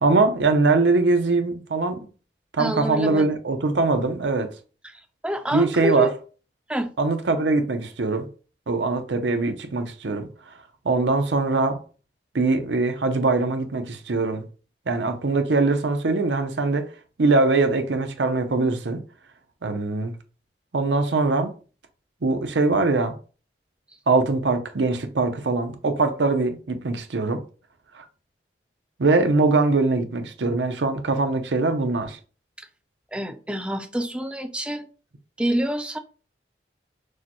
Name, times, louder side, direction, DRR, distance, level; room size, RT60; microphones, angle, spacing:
voice 1, 0.0-2.1 2.5-4.5 5.5-6.1 7.0-8.3 8.7-10.5 10.8-11.8 12.3-14.4 14.9-16.9 17.2-19.0 19.6-20.1 20.7-21.5 22.2-23.2 24.1-27.4 27.9-28.1 29.0-32.2, right 3 dB, 85° right, 0.7 m, -22 dB
voice 2, 2.6-3.3 4.9-6.1 6.7-6.9 32.6-32.7 33.1-34.9 35.4-36.0, equal, 5° right, 0.4 m, -27 dB
6.4 x 2.2 x 3.0 m
head